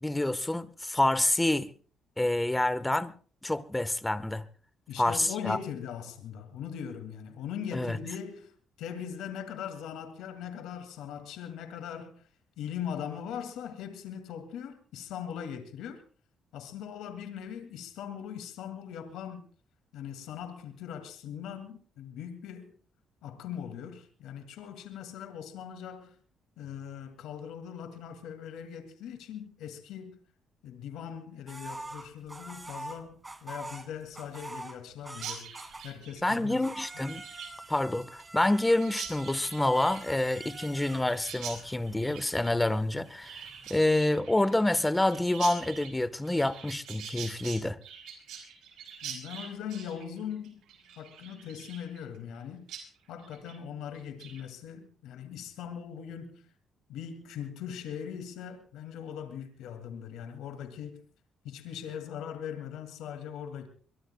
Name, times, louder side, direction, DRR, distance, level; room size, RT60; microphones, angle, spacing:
voice 1, 0.0-1.7 2.2-3.1 3.4-4.4 5.0-5.6 7.7-8.0 36.2-37.2 37.7-43.4 43.7-47.8, left 1 dB, 10° left, 1.2 m, -27 dB
voice 2, 4.9-8.5 8.8-12.3 12.6-16.0 16.5-19.5 19.9-22.7 23.2-26.1 26.6-30.2 30.6-35.5 35.8-36.9 49.0-50.6 51.0-52.7 53.1-56.4 56.9-61.0 61.4-63.7, left 8 dB, 90° left, 2.2 m, -40 dB
sound 1, 31.5-36.0 36.3-44.0, right 2 dB, 20° right, 2.3 m, -46 dB
Chirp tweet, 35.1-52.4 52.7-52.8 53.2-53.6 53.9-54.4, right 8 dB, 85° right, 5.0 m, -45 dB
23.5 x 22.5 x 2.3 m
cardioid pair, 90°, 0 cm